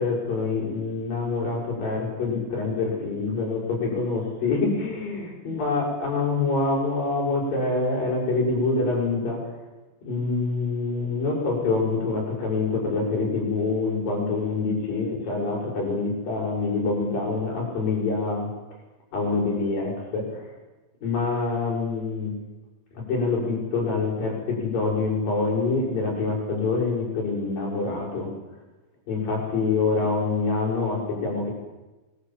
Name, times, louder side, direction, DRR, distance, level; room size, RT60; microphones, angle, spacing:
voice 1, 0.0-9.6 10.0-18.5 19.1-20.5 21.0-22.3 22.9-28.3 29.1-31.5, left 3 dB, 70° left, -2 dB, 8.2 m, -26 dB
25.5 x 22.0 x 7.5 m, 1.1 s
omnidirectional pair, 4.2 m